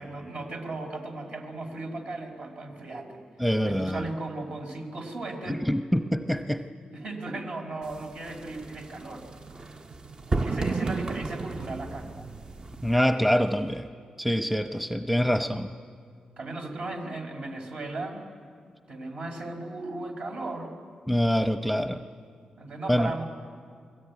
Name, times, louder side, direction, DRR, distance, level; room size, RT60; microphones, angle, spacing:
voice 1, 0.0-3.2 3.6-5.6 6.9-9.2 10.4-12.1 16.4-18.2 18.9-20.7 22.6-23.2, right 2 dB, 65° right, 3 dB, 4.8 m, -36 dB
voice 2, 3.4-4.1 5.5-6.6 12.8-13.9 14.2-15.7 21.1-22.0 22.9-23.1, equal, ahead, 8 dB, 0.9 m, -25 dB
sound 1, 7.8-13.0, right 3 dB, 35° right, 0.9 m, -33 dB
29.0 x 21.0 x 9.6 m, 2.1 s
wide cardioid pair, 105°, 2 cm